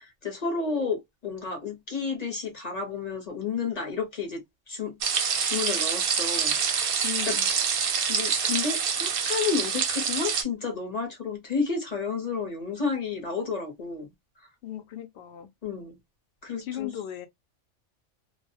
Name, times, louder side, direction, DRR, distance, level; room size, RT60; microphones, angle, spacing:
voice 1, 0.0-5.0 5.4-6.6 7.2-7.4 8.1-14.1 15.6-16.0 16.4-16.9, left 5 dB, 40° left, 0.8 m, -31 dB
sound 1, 5.0-10.4, right 6 dB, 60° right, 0.7 m, -26 dB
voice 2, 7.0-7.5 14.6-15.5 16.6-17.3, left 11 dB, 65° left, 0.8 m, -36 dB
2.3 x 2.1 x 2.6 m
omnidirectional pair, 1.3 m